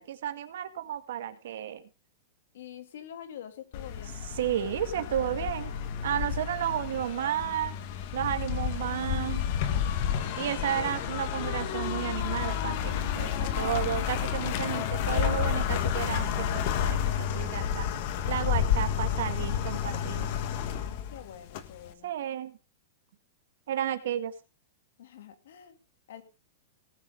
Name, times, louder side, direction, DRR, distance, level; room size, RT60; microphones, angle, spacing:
voice 1, 0.0-1.8 4.4-5.7 6.0-7.7 8.1-9.4 10.4-17.9 18.3-20.3 22.0-22.6 23.7-24.3, right 11 dB, 65° right, 10 dB, 1.9 m, -32 dB
voice 2, 2.5-4.2 21.1-22.1 25.0-25.8 26.1-26.2, left 10 dB, 70° left, 8 dB, 2.6 m, -45 dB
sound 1, 3.7-21.9, left 9 dB, 40° left, 1.5 m, -30 dB
18.5 x 7.0 x 5.1 m, 0.32 s
supercardioid pair, 165°, 0 cm